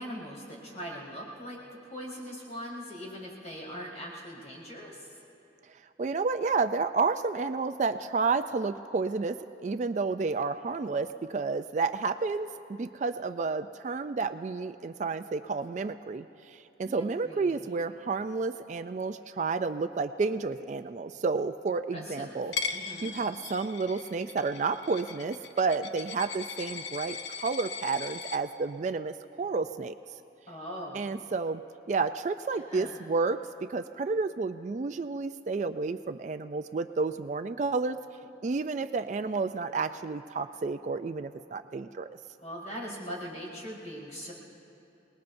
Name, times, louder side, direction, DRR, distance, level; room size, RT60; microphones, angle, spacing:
voice 1, 0.0-1.6 1.8-5.1 16.8-17.6 21.9-22.4 22.7-23.1 30.5-31.0 32.5-33.0 42.4-44.3, equal, 40° left, -4 dB, 4.2 m, -41 dB
voice 2, 6.0-9.4 9.6-22.5 23.0-30.0 30.9-31.6 31.9-33.4 33.7-38.0 38.4-42.1, right 4 dB, 40° right, 10 dB, 0.3 m, -31 dB
Coin (dropping), 22.5-28.4, left 5 dB, 85° left, 0.8 m, -39 dB
27.5 x 20.0 x 2.6 m, 2.9 s
head